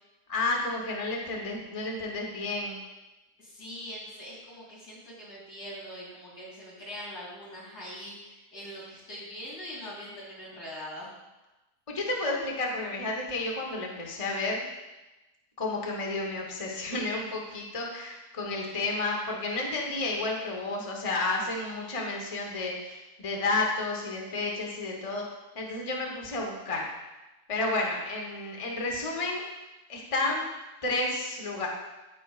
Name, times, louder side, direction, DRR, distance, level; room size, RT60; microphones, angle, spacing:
voice 1, 0.3-2.8 11.9-14.6 15.6-25.2 25.5-26.9 27.5-29.5 29.9-30.5 30.8-31.7, left 2 dB, 25° left, -1 dB, 0.9 m, -31 dB
voice 2, 3.4-11.1, equal, 65° left, -6 dB, 3.4 m, -42 dB
14.5 x 5.1 x 2.4 m, 1.1 s
omnidirectional pair, 1.8 m